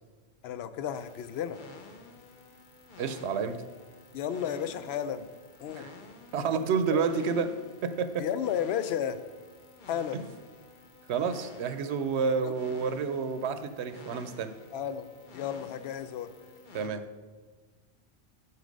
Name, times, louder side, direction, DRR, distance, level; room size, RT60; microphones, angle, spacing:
voice 1, 0.4-1.6 4.1-5.3 5.6-5.9 6.9-7.0 8.2-9.2 9.9-10.2 12.4-12.5 14.7-15.1 15.3-16.4, left 9 dB, 75° left, 12 dB, 0.8 m, -33 dB
sound 1, 0.9-16.9, left 3 dB, 50° left, 0.9 m, -51 dB
voice 2, 3.0-3.6 5.8-5.9 6.3-7.5 7.8-8.3 11.1-14.5 16.7-17.0, right 5 dB, 85° right, 11 dB, 0.9 m, -29 dB
9.5 x 4.6 x 5.2 m, 1.3 s
omnidirectional pair, 1.1 m